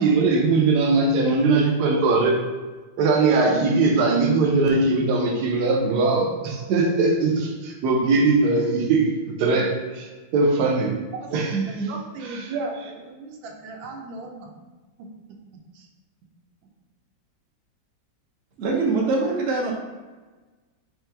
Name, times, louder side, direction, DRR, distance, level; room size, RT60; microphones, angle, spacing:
voice 1, 0.0-2.4 3.0-11.0 11.3-11.9 12.2-12.5, right 3 dB, 65° right, 2 dB, 1.2 m, -21 dB
voice 2, 11.9-14.5 15.0-15.1 15.7-15.9, right 3 dB, 90° right, 2 dB, 1.4 m, -35 dB
voice 3, 18.6-19.7, right 3 dB, 50° right, -2 dB, 0.9 m, -23 dB
4.4 x 3.1 x 3.4 m, 1.3 s
omnidirectional pair, 2.1 m